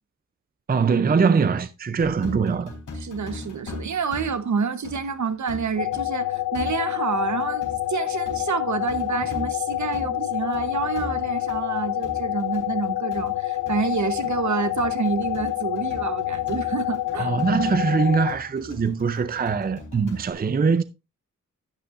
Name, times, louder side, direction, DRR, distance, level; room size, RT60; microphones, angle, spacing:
voice 1, 0.7-2.7 17.2-20.8, right 5 dB, 30° right, 0.5 m, -22 dB
sound 1, 2.0-20.3, left 2 dB, 85° left, 3.9 m, -40 dB
voice 2, 2.9-17.4, right 6 dB, 65° right, 1.1 m, -28 dB
sound 2, 5.8-18.3, left 15 dB, 70° left, 0.7 m, -27 dB
12.0 x 9.6 x 2.5 m
wide cardioid pair, 140°, 31 cm